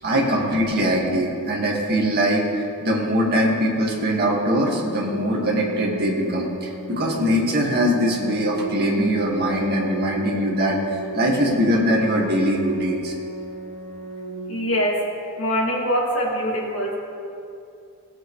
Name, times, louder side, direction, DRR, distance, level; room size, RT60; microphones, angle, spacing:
voice 1, 0.0-13.1, equal, 50° right, -3 dB, 1.9 m, -22 dB
Organ, 4.3-15.3, right 2 dB, 10° left, 1.5 m, -35 dB
voice 2, 14.5-15.0 15.4-16.9, equal, 70° left, -3 dB, 2.3 m, -23 dB
17.5 x 7.7 x 3.2 m, 2.6 s
head